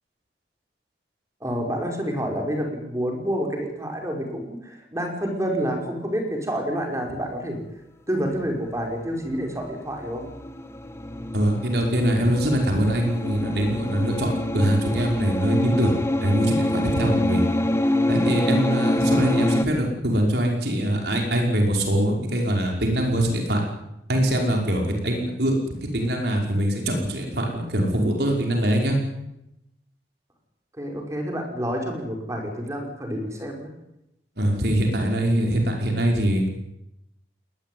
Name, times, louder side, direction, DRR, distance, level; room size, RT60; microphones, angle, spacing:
voice 1, 1.4-7.6 8.1-10.2 30.8-33.7, equal, 20° right, 2 dB, 5.7 m, -28 dB
sound 1, 9.3-19.7, left 1 dB, 15° left, 1.5 m, -26 dB
voice 2, 11.3-15.9 16.2-17.4 18.1-23.6 24.1-25.5 25.8-29.0 34.4-36.5, right 1 dB, 65° right, 1 dB, 5.5 m, -23 dB
20.5 x 20.0 x 9.6 m, 0.86 s
head